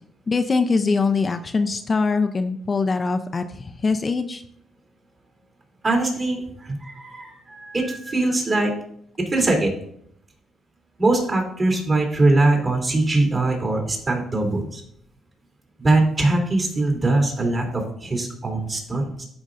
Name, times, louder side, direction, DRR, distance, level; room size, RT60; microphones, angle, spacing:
voice 1, 0.3-4.4, left 4 dB, 35° left, 7 dB, 0.5 m, -22 dB
voice 2, 5.8-8.7 9.3-9.7 11.0-14.8 15.8-19.2, right 2 dB, 35° right, 1 dB, 2.9 m, -22 dB
12.0 x 5.2 x 2.5 m, 0.68 s
cardioid pair, 90°, 0 cm